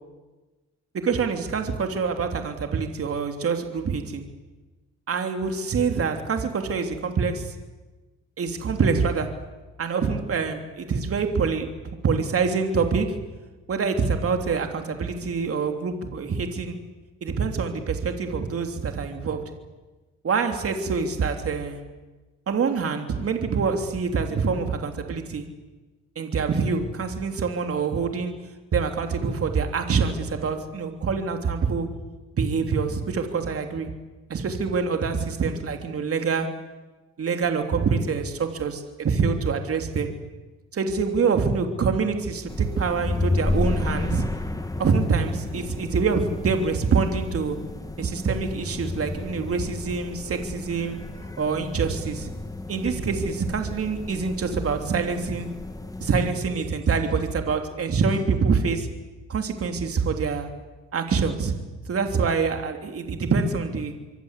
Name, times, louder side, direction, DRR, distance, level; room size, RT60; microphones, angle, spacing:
voice 1, 1.0-4.2 5.1-7.5 8.4-9.3 9.8-11.7 12.0-13.2 13.7-16.8 17.2-19.4 20.2-21.8 22.5-25.5 26.1-28.3 28.7-31.9 32.3-33.9 34.3-36.5 37.2-40.1 40.7-44.3 44.8-47.6 48.0-51.0 51.4-52.3 52.7-55.5 56.0-58.9 59.3-60.5 60.9-61.5 61.8-63.9, right 5 dB, 50° right, 5 dB, 3.2 m, -25 dB
sound 1, 42.5-56.3, left 2 dB, 10° left, 2.4 m, -32 dB
26.0 x 24.5 x 8.4 m, 1.2 s
cardioid pair, 90°, 30 cm